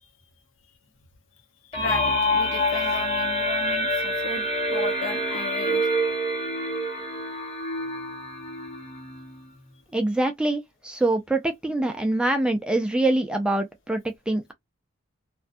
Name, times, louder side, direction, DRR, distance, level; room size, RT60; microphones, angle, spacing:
voice 1, 1.7-5.9, left 4 dB, 65° left, 0.8 m, -34 dB
sound 1, 1.7-9.4, equal, 30° left, 0.9 m, -26 dB
voice 2, 9.9-14.5, right 2 dB, 5° right, 0.3 m, -24 dB
2.5 x 2.3 x 2.4 m
head